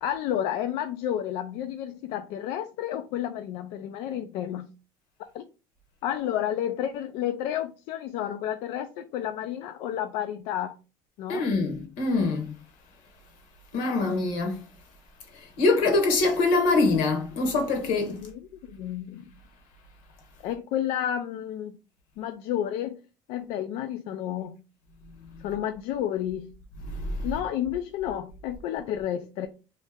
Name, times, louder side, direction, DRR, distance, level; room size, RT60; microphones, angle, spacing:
voice 1, 0.0-4.7 5.3-5.4 6.0-10.8 11.2-11.5 18.2-19.2 20.4-21.8 22.2-23.0 23.3-24.6 25.4-26.6 27.2-29.5, left 10 dB, 70° left, 0.3 m, -31 dB
voice 2, 11.3-12.5 13.7-14.6 15.6-18.2 26.9-27.3, left 3 dB, 90° left, 1.3 m, -24 dB
3.1 x 2.7 x 3.5 m
cardioid pair, 125°, 10 cm